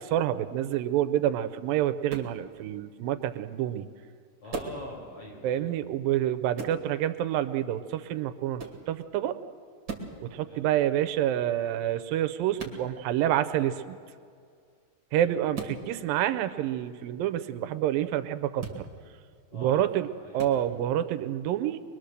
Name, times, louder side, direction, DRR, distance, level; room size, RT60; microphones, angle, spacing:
voice 1, 0.0-3.9 5.4-9.3 10.2-14.0 15.1-18.9 19.5-20.1 20.3-21.8, right 11 dB, 85° right, 12 dB, 2.5 m, -28 dB
sound 1, 2.1-2.4 4.5-4.8 6.6-6.8 8.6-8.8 9.8-10.2 12.6-12.8 15.5-15.8 18.6-18.8 20.4-20.6, right 4 dB, 35° right, 2.6 m, -37 dB
voice 2, 4.4-5.8 10.4-10.7 15.2-15.3 19.5-20.4, left 1 dB, 40° left, -2 dB, 6.4 m, -45 dB
23.5 x 22.0 x 6.7 m, 2.2 s
omnidirectional pair, 4.0 m